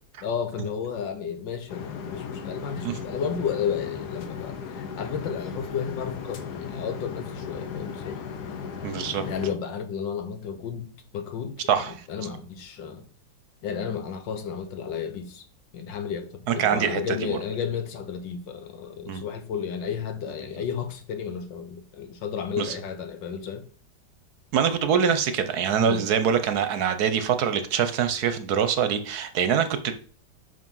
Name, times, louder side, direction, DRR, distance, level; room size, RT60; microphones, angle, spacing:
voice 1, 0.2-8.2 9.3-13.0 13.6-15.4 15.7-23.7 25.8-26.0, left 7 dB, 85° left, 1.7 m, -32 dB
sound 1, 1.7-9.5, left 6 dB, 65° left, 1.4 m, -36 dB
voice 2, 8.8-9.2 11.7-12.0 16.5-17.4 19.1-19.2 22.6-22.7 24.5-29.9, right 7 dB, 65° right, 1.1 m, -24 dB
5.9 x 5.2 x 5.4 m
omnidirectional pair, 2.0 m